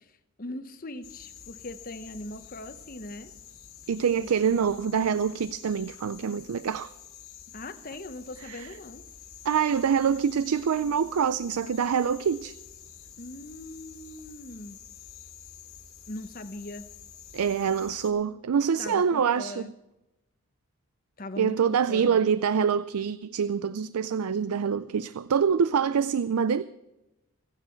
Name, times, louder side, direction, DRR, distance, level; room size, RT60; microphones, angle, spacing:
voice 1, 0.4-3.3 4.2-4.6 7.5-9.0 13.2-14.8 16.1-16.9 18.8-19.7 21.2-21.6 21.9-22.3, left 1 dB, 40° left, 0.9 m, -40 dB
sound 1, 1.0-18.1, left 8 dB, 75° left, 2.3 m, -49 dB
voice 2, 3.9-6.9 8.4-8.7 9.4-12.6 17.3-19.7 21.4-26.6, right 7 dB, 90° right, 0.4 m, -25 dB
25.5 x 9.1 x 4.5 m
head